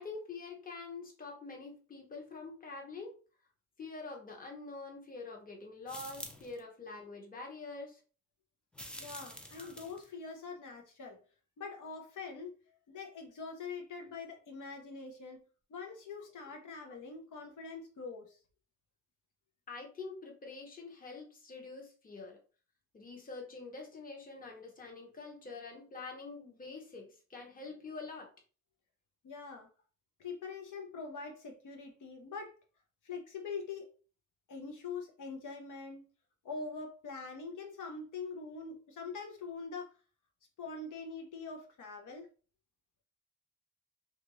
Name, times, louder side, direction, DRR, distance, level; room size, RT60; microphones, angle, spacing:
voice 1, 0.0-3.1 3.8-8.0 9.6-9.7 16.9-17.0 19.7-22.4 22.9-28.3, left 3 dB, 30° left, 0.8 m, -46 dB
sound 1, 5.9-6.6 8.7-10.1, equal, 5° left, 0.4 m, -47 dB
voice 2, 8.9-11.2 11.6-15.4 15.7-18.4 29.2-29.7 30.2-32.6 33.0-33.9 34.5-36.1 36.4-39.9 40.6-42.3, left 4 dB, 85° left, 0.7 m, -44 dB
2.8 x 2.4 x 2.9 m
wide cardioid pair, 130°, 30 cm